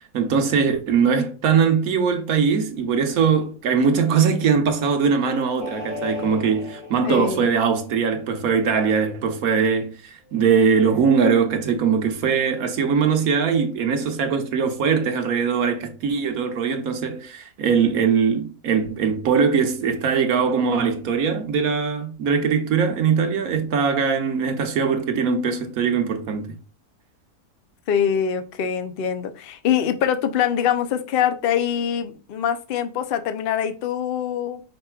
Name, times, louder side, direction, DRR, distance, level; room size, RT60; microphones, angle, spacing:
voice 1, 0.1-26.5, right 6 dB, 65° right, 1.2 m, -21 dB
sound 1, 5.6-8.2 10.4-11.0, left 3 dB, 20° left, 1.3 m, -36 dB
voice 2, 7.0-7.5 27.9-34.6, left 9 dB, 70° left, 0.5 m, -24 dB
5.1 x 4.4 x 2.3 m
omnidirectional pair, 1.7 m